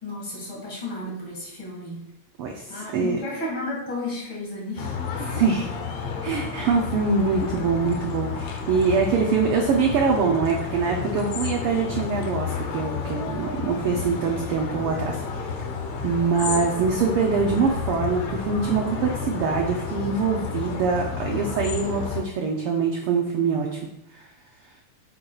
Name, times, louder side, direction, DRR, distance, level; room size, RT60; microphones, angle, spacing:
voice 1, 0.0-2.1 2.7-5.0, left 2 dB, 45° left, -3 dB, 2.3 m, -33 dB
voice 2, 2.4-3.2 5.2-5.7 6.2-15.5 16.0-23.8 24.1-24.3, right 5 dB, 80° right, 1 dB, 1.3 m, -24 dB
sound 1, 4.8-22.2, left 6 dB, 70° left, 1.9 m, -31 dB
8.6 x 6.4 x 2.4 m, 0.84 s
omnidirectional pair, 3.4 m